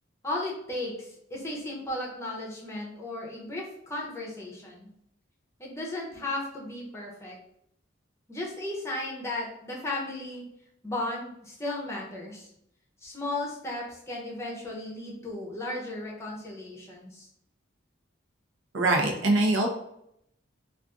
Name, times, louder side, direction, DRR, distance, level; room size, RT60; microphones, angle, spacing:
voice 1, 0.2-4.9 5.6-7.4 8.3-10.5 10.8-12.5 13.0-17.3, left 2 dB, 15° left, -3 dB, 0.6 m, -35 dB
voice 2, 18.7-19.7, right 2 dB, 80° right, 0 dB, 0.7 m, -23 dB
2.4 x 2.4 x 3.6 m, 0.75 s
head